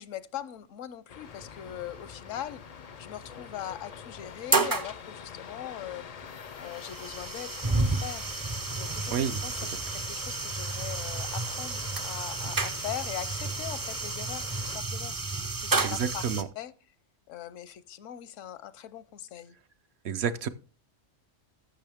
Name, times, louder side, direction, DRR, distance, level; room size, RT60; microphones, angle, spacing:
voice 1, 0.0-2.6 3.0-6.1 6.6-8.3 8.8-9.2 9.4-9.6 9.9-15.1 15.6-16.3 16.6-16.7 17.3-19.6, left 11 dB, 80° left, 1.0 m, -40 dB
sound 1, 1.1-14.8, left 7 dB, 65° left, 0.3 m, -45 dB
sound 2, 1.4-1.7 2.9-3.0 3.5-3.6 4.1-4.9 6.0-16.4, right 3 dB, 30° right, 0.3 m, -31 dB
voice 2, 15.8-16.5 20.0-20.5, right 7 dB, 65° right, 0.8 m, -29 dB
14.5 x 6.2 x 3.5 m
omnidirectional pair, 1.3 m